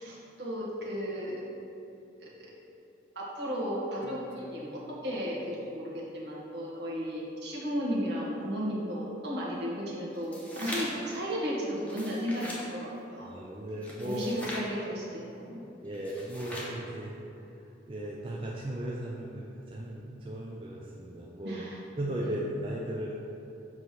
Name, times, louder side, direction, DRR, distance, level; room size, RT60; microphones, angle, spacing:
voice 1, 0.0-1.4 2.2-2.3 3.1-13.3 14.0-15.6 21.4-21.8 22.2-22.3, equal, 65° right, -5 dB, 1.5 m, -34 dB
Guitar, 4.0-7.2, equal, 65° left, 0.7 m, -53 dB
sound 1, 10.1-11.1 11.8-12.7 13.8-14.7 15.9-16.8, left 1 dB, 10° left, 0.9 m, -40 dB
voice 2, 13.2-14.5 15.8-17.1 17.9-21.6 22.0-23.1, right 1 dB, 30° right, -4 dB, 0.5 m, -36 dB
7.6 x 3.1 x 5.9 m, 2.8 s
head